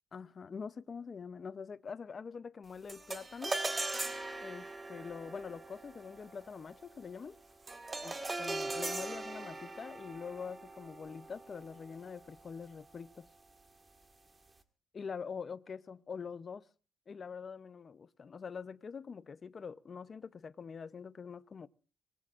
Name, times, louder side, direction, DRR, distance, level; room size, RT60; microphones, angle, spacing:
voice 1, 0.1-3.6 4.4-7.4 8.0-8.1 8.4-13.3 14.9-16.6 17.1-21.7, left 6 dB, 35° left, 0.7 m, -44 dB
sound 1, 2.9-12.4, right 2 dB, 20° right, 1.8 m, -40 dB
26.0 x 19.5 x 2.5 m
cardioid pair, 135°, 0 cm